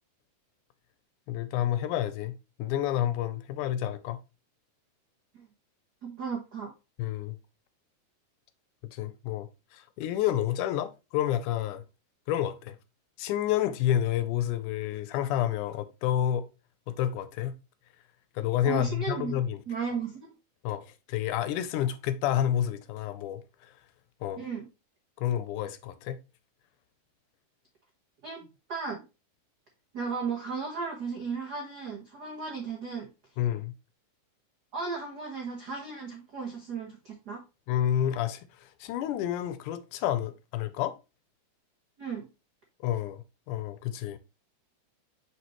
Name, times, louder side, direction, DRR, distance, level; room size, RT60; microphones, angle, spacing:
voice 1, 1.3-2.3 2.6-4.2 7.0-7.4 8.9-11.8 12.3-12.8 13.2-16.4 16.9-17.5 18.4-19.6 20.6-23.7 24.2-24.4 25.2-26.2 33.4-33.7 37.7-41.0 42.8-44.2, left 11 dB, 80° left, 2.1 m, -29 dB
voice 2, 6.0-6.7 18.6-19.4 19.7-20.3 24.4-24.7 28.2-29.0 29.9-33.1 34.7-37.4 42.0-42.3, right 5 dB, 85° right, 0.8 m, -35 dB
6.0 x 5.9 x 3.0 m
omnidirectional pair, 3.6 m